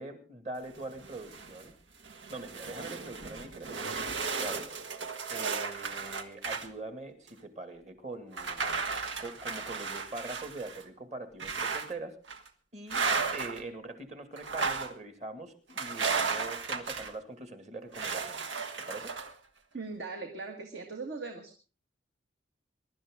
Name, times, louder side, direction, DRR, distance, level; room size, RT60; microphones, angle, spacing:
voice 1, 0.0-1.7 2.3-4.7 5.3-8.8 9.2-12.2 12.7-13.0 13.3-18.5 18.9-19.1, right 2 dB, 40° right, 8 dB, 2.1 m, -43 dB
sound 1, 0.7-1.6 2.0-6.7 7.3-7.4 8.3-10.8 11.4-11.9 12.3-12.5 12.9-13.6 14.4-14.9 15.8-17.1 17.9-19.3, right 5 dB, 90° right, 1.6 m, -34 dB
voice 2, 19.7-21.5, right 3 dB, 65° right, 3 dB, 2.0 m, -39 dB
22.5 x 12.0 x 3.7 m, 0.35 s
head